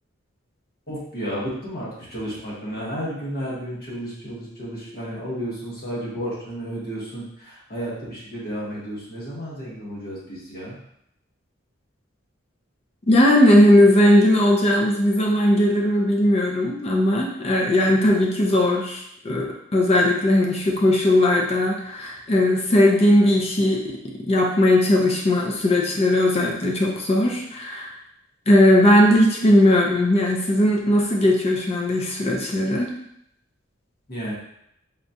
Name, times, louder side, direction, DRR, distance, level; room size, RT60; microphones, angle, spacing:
voice 1, 0.9-10.8 34.1-34.3, equal, 50° left, -7 dB, 1.3 m, -32 dB
voice 2, 13.1-28.0 28.5-32.9, left 1 dB, 30° left, 0 dB, 0.5 m, -18 dB
4.1 x 2.3 x 2.7 m, 0.75 s
head